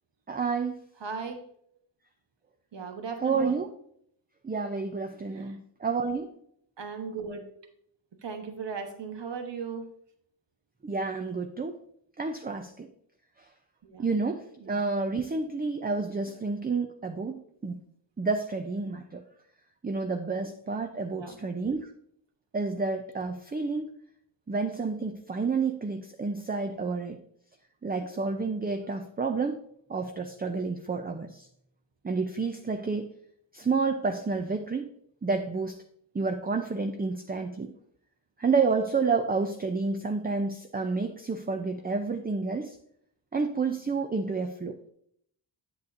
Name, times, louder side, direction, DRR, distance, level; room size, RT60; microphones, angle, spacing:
voice 1, 0.3-0.7 3.2-3.7 4.4-6.3 10.8-11.8 12.2-12.9 14.0-17.4 17.6-17.8 18.2-19.2 19.8-21.9 22.5-23.9 24.5-27.2 27.8-29.6 29.9-31.5 32.0-33.1 33.5-34.9 35.2-35.8 36.1-37.7 38.4-42.8 43.3-44.8, right 4 dB, 20° right, 6 dB, 0.5 m, -29 dB
voice 2, 1.0-1.4 2.7-3.6 5.3-5.5 6.8-7.4 8.2-9.9 13.8-14.1 14.6-14.9 21.1-21.3, right 5 dB, 65° right, 5 dB, 1.2 m, -37 dB
8.1 x 8.1 x 2.6 m, 0.67 s
cardioid pair, 65°, 46 cm